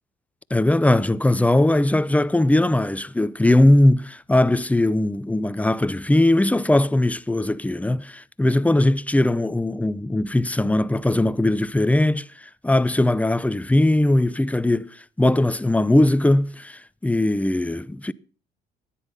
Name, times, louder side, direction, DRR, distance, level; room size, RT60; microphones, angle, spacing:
voice 1, 0.5-18.1, left 1 dB, 10° left, 0.6 m, -20 dB
14.0 x 10.0 x 5.6 m
supercardioid pair, 80°, 18 cm